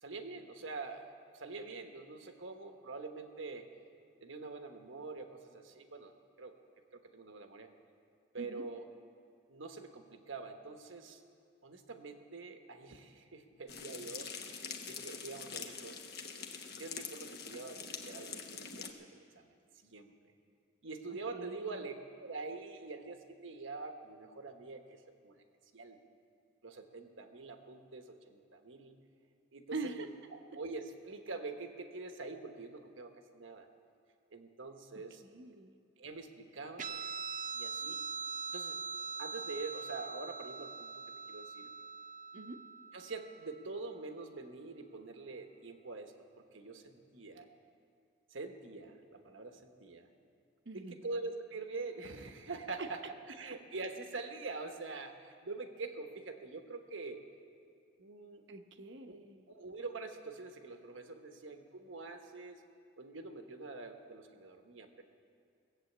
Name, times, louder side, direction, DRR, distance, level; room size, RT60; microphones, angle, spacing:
voice 1, 0.0-3.7 4.2-6.5 6.9-7.7 8.3-8.8 9.5-11.2 11.6-16.0 16.7-19.5 19.8-20.1 20.8-21.9 22.2-25.4 25.7-26.0 26.6-28.9 29.5-30.0 30.3-33.7 34.3-35.2 36.0-37.0 37.5-38.1 38.5-38.8 39.2-40.9 41.3-41.7 42.9-46.1 46.5-47.5 48.3-50.1 50.7-57.2 58.0-58.4 59.1-59.2 59.5-62.6 63.0-65.0, right 3 dB, 85° right, 6 dB, 1.2 m, -45 dB
sound 1, 13.7-18.9, left 6 dB, 55° left, 1.1 m, -45 dB
voice 2, 21.3-21.8 29.7-30.1 35.2-35.8 42.3-42.6 50.7-50.9 52.8-52.9 58.5-59.5, right 3 dB, 65° right, 7 dB, 0.9 m, -43 dB
Guitar, 36.8-43.7, right 5 dB, 40° right, 0.5 m, -42 dB
18.0 x 7.7 x 8.5 m, 2.3 s
head